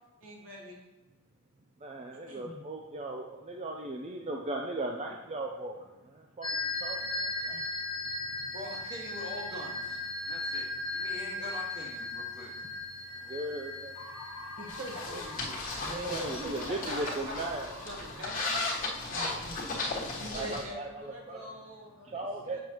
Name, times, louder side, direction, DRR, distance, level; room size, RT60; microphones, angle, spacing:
voice 1, 0.2-0.9 2.1-2.6 7.5-7.6 14.6-15.2 15.8-17.0 19.1-19.5 20.2-22.6, equal, 65° right, -1 dB, 1.6 m, -43 dB
voice 2, 1.8-7.6 13.2-14.0 16.1-17.7 20.3-21.5 22.0-22.6, right 2 dB, 30° right, 1 dB, 0.5 m, -38 dB
sound 1, 6.4-16.7, left 3 dB, 20° left, 1.0 m, -37 dB
voice 3, 8.4-12.6 15.1-15.6 16.7-18.5 18.9-19.6, equal, 50° right, -4 dB, 1.9 m, -44 dB
sound 2, 13.9-21.8, left 2 dB, 85° left, 1.1 m, -48 dB
sound 3, 14.7-20.6, left 2 dB, 40° left, 1.3 m, -36 dB
7.2 x 6.4 x 3.0 m, 1.1 s
head